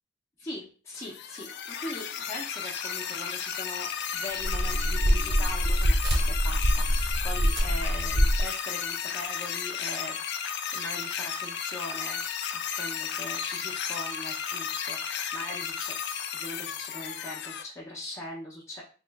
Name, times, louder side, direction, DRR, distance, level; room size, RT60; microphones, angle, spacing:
voice 1, 0.4-12.2 12.5-16.0 16.3-18.8, left 1 dB, 15° left, -6 dB, 0.7 m, -41 dB
sound 1, 1.0-17.6, left 7 dB, 55° left, 0.3 m, -34 dB
sound 2, 4.1-9.3, right 2 dB, 55° right, 0.8 m, -45 dB
sound 3, 4.4-8.4, equal, 25° right, 0.4 m, -25 dB
3.0 x 2.4 x 3.5 m, 0.38 s
head